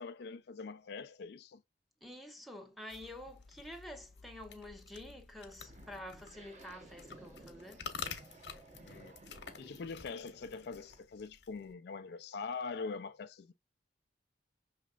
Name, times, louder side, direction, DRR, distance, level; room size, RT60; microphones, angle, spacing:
voice 1, 0.0-1.6 8.8-9.2 9.6-13.5, left 4 dB, 65° left, 0.4 m, -43 dB
voice 2, 2.0-7.9, left 1 dB, ahead, 0.8 m, -49 dB
sound 1, 2.9-11.7, left 6 dB, 85° left, 0.9 m, -49 dB
sound 2, 5.6-11.0, right 2 dB, 40° right, 1.1 m, -57 dB
5.7 x 3.1 x 2.4 m
head